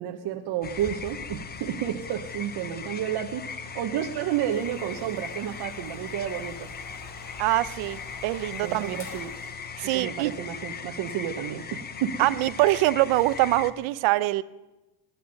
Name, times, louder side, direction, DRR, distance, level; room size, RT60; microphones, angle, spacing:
voice 1, 0.0-6.5 8.6-9.3 9.9-12.1, right 10 dB, 60° right, 3 dB, 1.1 m, -31 dB
sound 1, 0.6-13.7, left 6 dB, 20° left, 0.7 m, -39 dB
sound 2, 4.5-9.5, left 2 dB, 40° left, 5.5 m, -47 dB
voice 2, 7.4-9.0 9.8-10.3 12.2-14.4, right 18 dB, 85° right, 17 dB, 0.8 m, -24 dB
19.5 x 11.0 x 5.3 m, 1.1 s
cardioid pair, 130°, 46 cm